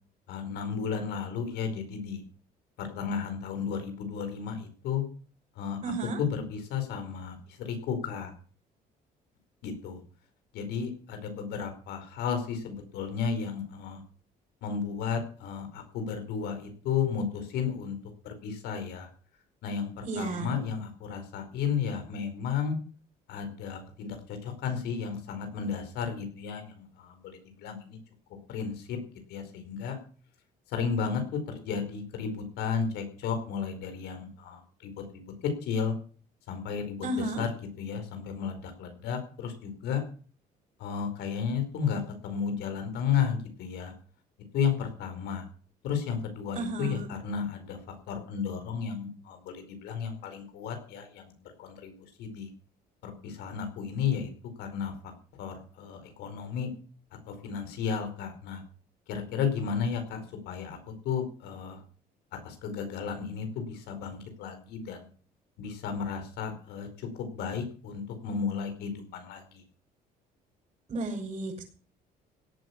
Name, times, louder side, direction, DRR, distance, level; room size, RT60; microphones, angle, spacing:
voice 1, 0.3-2.2 2.8-5.1 5.5-5.8 6.2-8.3 9.6-10.0 10.5-14.0 14.6-18.0 18.2-19.1 19.6-22.8 23.3-28.0 28.5-29.0 29.3-30.0 30.7-35.3 35.6-35.9 36.5-40.0 40.8-43.9 44.5-45.4 45.8-51.3 51.6-51.9 52.2-52.5 53.0-54.3 54.6-56.7 57.3-58.6 59.1-60.8 61.0-61.8 62.4-65.1 65.6-69.6, left 6 dB, 85° left, 7 dB, 4.8 m, -33 dB
voice 2, 5.8-6.2 20.0-20.5 37.0-37.4 46.5-47.1 70.9-71.6, right 2 dB, 40° right, -2 dB, 6.5 m, -33 dB
17.0 x 9.2 x 7.1 m, 0.42 s
cardioid pair, 110°, 17 cm